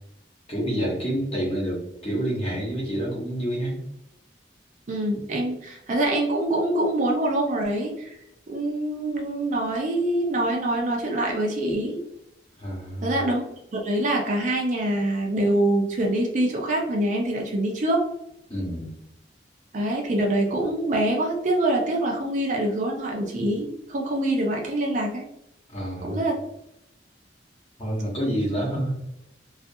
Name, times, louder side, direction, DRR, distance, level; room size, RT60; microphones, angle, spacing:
voice 1, 0.5-3.8 12.6-13.1 18.5-18.9 25.7-26.2 27.8-29.0, equal, 35° left, -4 dB, 0.9 m, -28 dB
voice 2, 4.9-8.2 8.5-12.0 13.0-13.4 13.7-18.0 19.7-25.2 26.0-26.3, right 1 dB, 45° right, 0 dB, 0.5 m, -25 dB
2.4 x 2.4 x 2.6 m, 0.81 s
head